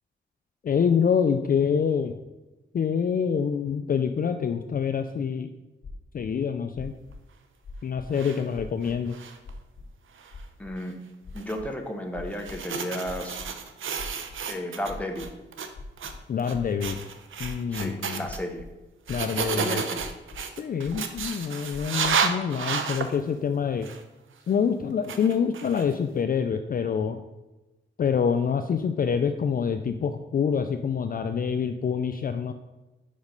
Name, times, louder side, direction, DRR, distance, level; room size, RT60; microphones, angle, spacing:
voice 1, 0.6-2.2 2.7-5.5 6.1-6.9 7.8-9.2 16.3-17.0 17.4-18.2 19.1-19.8 20.6-23.9 24.5-27.2 28.0-32.5, left 7 dB, 45° left, 7 dB, 0.4 m, -26 dB
sound 1, 5.8-6.2 6.7-7.2 7.6-8.2 8.5-9.0 9.4-9.9 10.3-10.7 11.2-11.7 12.1-12.7 13.0-13.5 14.0-14.5 14.8-15.3 15.7-16.9 17.4-17.8 18.3-18.8 19.1-19.5 20.0-20.4 20.8-21.4 21.7-22.1, left 3 dB, 60° left, 1.6 m, -42 dB
sound 2, 8.1-8.4 8.8-9.5 10.2-10.4 11.4-11.5 12.3-14.9 15.2-15.7 16.0-16.1 16.4-16.5 16.8-18.4 19.1-23.1 23.8-24.0 25.0-26.0, right 6 dB, 80° right, 0.7 m, -31 dB
voice 2, 10.6-11.0 11.3-13.4 14.5-15.3 17.7-18.7 19.6-20.1, equal, 5° left, 3 dB, 0.9 m, -33 dB
5.3 x 5.1 x 5.2 m, 1.1 s
wide cardioid pair, 100°, 20 cm